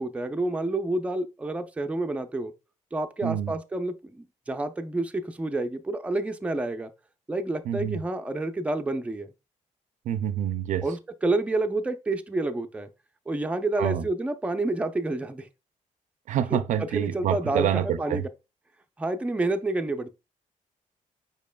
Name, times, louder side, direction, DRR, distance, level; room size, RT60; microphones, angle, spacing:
voice 1, 0.0-2.5 2.9-6.9 7.3-9.3 10.8-12.9 13.3-15.5 16.5-18.2 19.0-20.1, right 2 dB, 10° right, 0.5 m, -29 dB
voice 2, 3.2-3.5 7.7-8.0 10.1-10.9 13.8-14.1 16.3-18.2, right 10 dB, 75° right, 0.4 m, -27 dB
5.2 x 4.6 x 2.2 m
cardioid pair, 125°, 13 cm